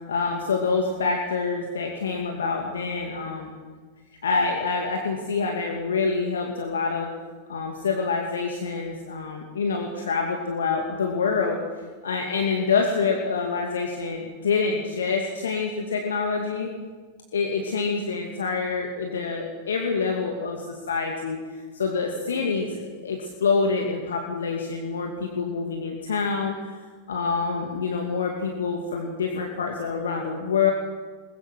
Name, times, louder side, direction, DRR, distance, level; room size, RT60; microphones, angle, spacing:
voice 1, 0.1-3.5 4.2-7.1 7.5-11.6 12.0-16.7 17.3-21.4 21.7-26.8 27.1-30.7, left 5 dB, 65° left, 2 dB, 2.3 m, -26 dB
22.0 x 21.0 x 6.2 m, 1.5 s
figure-of-eight pair, 90°, 0 cm